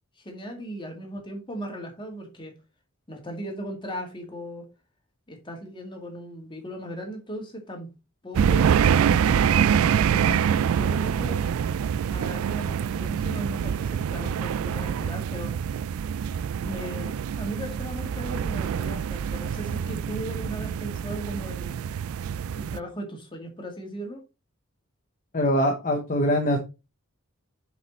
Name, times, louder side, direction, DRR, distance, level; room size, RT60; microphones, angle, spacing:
voice 1, 0.2-2.5 3.1-4.6 5.3-7.9 8.2-8.7 9.3-11.4 12.1-15.6 16.6-21.9 22.6-24.2, right 1 dB, 25° left, 2.1 m, -37 dB
sound 1, 8.3-22.8, right 8 dB, 80° right, 0.3 m, -25 dB
voice 2, 25.3-26.6, equal, 40° left, 1.0 m, -23 dB
6.5 x 5.1 x 4.3 m
head